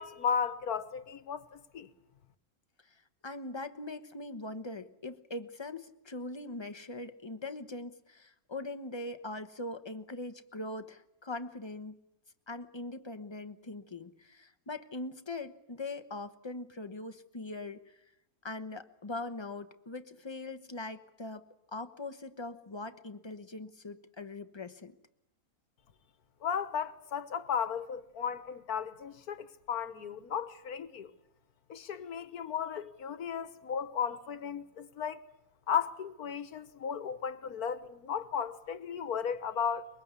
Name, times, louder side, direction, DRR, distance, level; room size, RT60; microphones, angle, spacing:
voice 1, 0.0-1.9 26.4-31.1 31.7-35.2 35.7-39.9, left 7 dB, 75° left, 1.7 m, -35 dB
voice 2, 3.2-12.0 12.5-18.0 18.4-24.9, left 2 dB, 20° left, 1.0 m, -41 dB
23.5 x 22.0 x 8.3 m
omnidirectional pair, 1.6 m